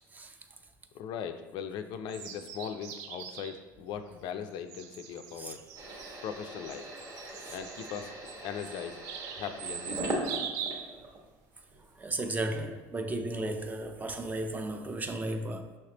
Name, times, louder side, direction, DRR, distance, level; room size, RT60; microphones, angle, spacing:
voice 1, 0.9-5.6 6.2-6.9 7.5-8.1 8.4-9.0 9.3-10.5, left 8 dB, 65° left, 0.4 m, -39 dB
sound 1, 2.1-3.6 4.6-11.0, right 8 dB, 85° right, 0.4 m, -42 dB
sound 2, 5.8-11.3 11.7-12.4, right 1 dB, 35° right, 1.1 m, -40 dB
voice 2, 12.0-15.7, right 2 dB, 20° right, 0.4 m, -35 dB
5.6 x 3.3 x 2.9 m
supercardioid pair, 105°, 8 cm